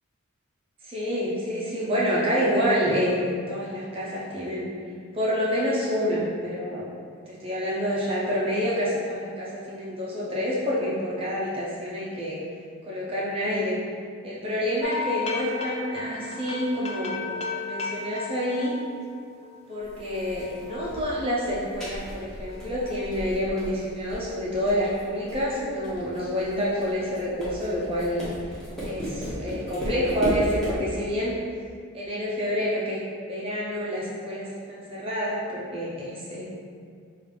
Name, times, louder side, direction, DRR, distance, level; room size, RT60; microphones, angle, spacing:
voice 1, 0.8-4.7 5.1-6.9 7.3-12.4 12.9-13.8 14.2-18.8 19.7-28.3 28.8-31.3 31.9-36.4, equal, 25° right, -7 dB, 0.5 m, -28 dB
sound 1, 14.8-19.6 20.0-22.0 22.5-23.1, left 4 dB, 30° left, 0.3 m, -35 dB
sound 2, 19.8-30.9, equal, ahead, 0.9 m, -35 dB
5.0 x 2.4 x 3.3 m, 2.2 s
head